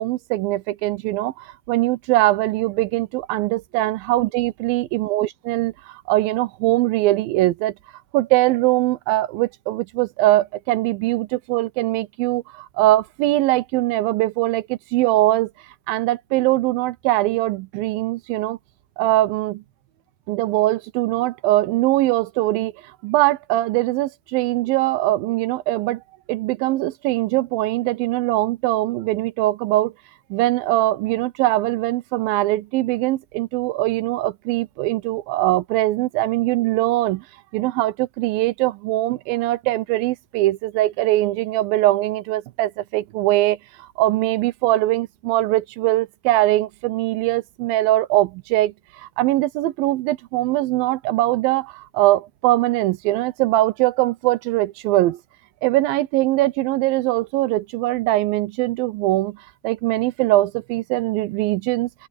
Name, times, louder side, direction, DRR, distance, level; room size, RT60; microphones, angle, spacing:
voice 1, 0.0-7.7 8.1-15.5 15.9-18.6 19.0-19.6 20.3-22.7 23.0-26.0 26.3-29.9 30.3-37.2 37.5-55.2 55.6-59.4 59.6-61.9, right 16 dB, 85° right, 2.5 m, -21 dB
omnidirectional pair, 4.1 m